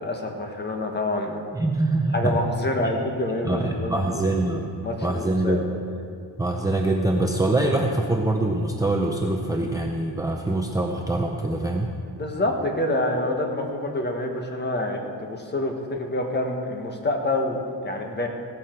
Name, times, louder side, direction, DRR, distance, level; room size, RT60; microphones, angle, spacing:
voice 1, 0.0-1.4 2.1-4.3 4.8-5.6 12.1-18.3, left 1 dB, 25° left, 2 dB, 1.4 m, -27 dB
voice 2, 1.5-2.3 3.4-4.7 5.0-5.6 6.4-11.9, right 2 dB, 10° right, 1 dB, 0.6 m, -24 dB
16.0 x 13.0 x 4.6 m, 2.4 s
wide cardioid pair, 165°, 42 cm